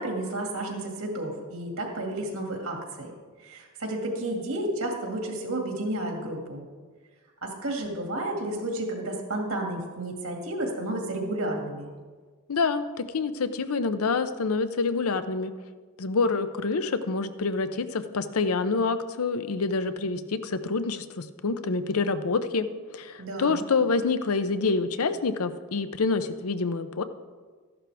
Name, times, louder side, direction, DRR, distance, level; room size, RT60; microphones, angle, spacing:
voice 1, 0.0-3.1 3.4-6.6 7.4-11.9 23.2-23.6, right 1 dB, 75° right, 1 dB, 2.2 m, -31 dB
voice 2, 12.5-15.5 16.0-22.7 22.9-27.0, left 4 dB, 80° left, 11 dB, 0.6 m, -27 dB
14.0 x 11.0 x 3.5 m, 1.5 s
head